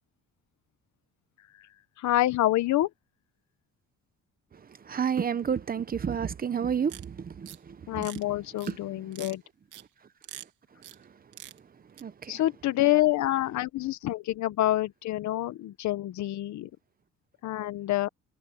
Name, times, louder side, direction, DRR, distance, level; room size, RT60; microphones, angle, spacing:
voice 1, 2.0-2.9 7.9-9.4 12.3-16.7 17.4-18.1, left 15 dB, 70° left, 1.0 m, -27 dB
voice 2, 4.5-8.1 8.6-9.1 10.9-11.1 12.0-12.4, right 7 dB, 30° right, 0.9 m, -31 dB
sound 1, 6.9-7.0 7.5-7.6 8.0-8.2 8.6-8.7 9.1-9.3 9.7-9.8 10.2-10.5 10.8-11.0 11.3-11.6 12.0-12.1, right 13 dB, 90° right, 2.8 m, -44 dB
cardioid pair, 135°, 30 cm